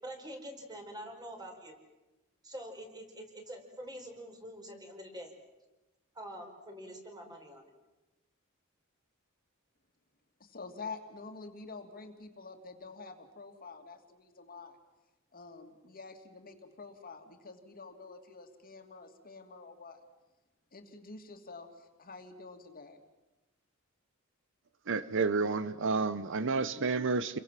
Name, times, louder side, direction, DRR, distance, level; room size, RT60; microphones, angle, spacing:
voice 1, 0.0-1.8 2.4-5.3 6.1-7.6, equal, 20° right, 3 dB, 4.8 m, -45 dB
voice 2, 10.4-14.8 15.3-20.0 20.7-23.0, left 4 dB, 45° left, 6 dB, 2.7 m, -48 dB
voice 3, 24.9-27.4, right 4 dB, 60° right, 15 dB, 0.8 m, -30 dB
30.0 x 23.0 x 7.6 m, 1.1 s
head